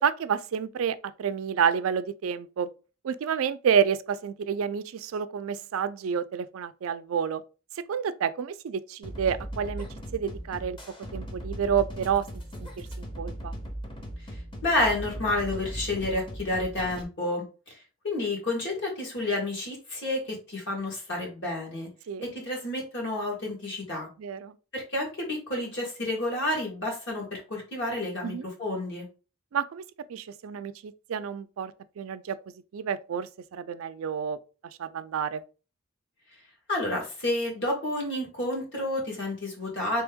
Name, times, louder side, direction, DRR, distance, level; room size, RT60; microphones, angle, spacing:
voice 1, 0.0-2.7 3.0-7.4 7.9-9.9 10.1-10.8 11.1-12.3 12.6-13.5 22.1-22.3 24.2-24.6 28.2-28.5 29.5-29.8 30.1-32.4 32.7-34.4 34.8-35.4, right 7 dB, 85° right, 0.4 m, -29 dB
sound 1, 9.0-17.0, equal, 25° left, 0.8 m, -38 dB
voice 2, 14.6-17.4 18.0-21.9 22.2-24.1 24.7-29.1 36.7-40.0, left 2 dB, 65° left, 1.9 m, -30 dB
3.5 x 3.3 x 3.5 m
head